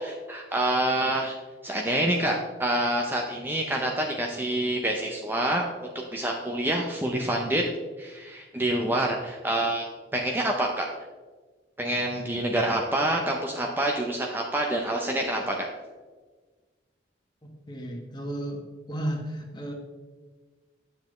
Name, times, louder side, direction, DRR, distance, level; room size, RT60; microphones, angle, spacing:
voice 1, 0.0-1.3 1.6-7.6 8.0-9.9 10.1-10.9 11.8-15.7, right 1 dB, 10° right, 0 dB, 0.6 m, -27 dB
voice 2, 17.7-18.6 18.9-19.7, right 1 dB, 25° left, 2 dB, 1.2 m, -33 dB
9.9 x 6.9 x 3.2 m, 1.4 s
head